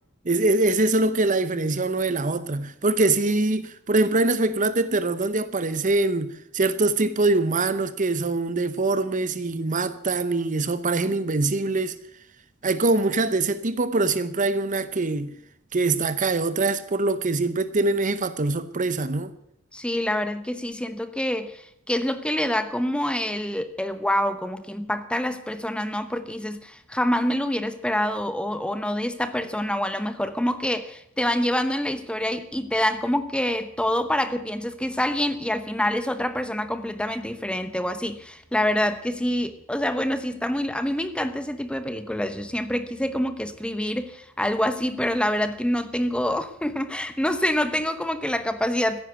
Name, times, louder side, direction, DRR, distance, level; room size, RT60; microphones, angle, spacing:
voice 1, 0.2-11.9 12.6-15.3 15.7-19.3, right 2 dB, 35° right, 0.8 m, -23 dB
voice 2, 19.7-49.0, left 1 dB, 5° left, 0.9 m, -26 dB
15.5 x 10.0 x 8.2 m
head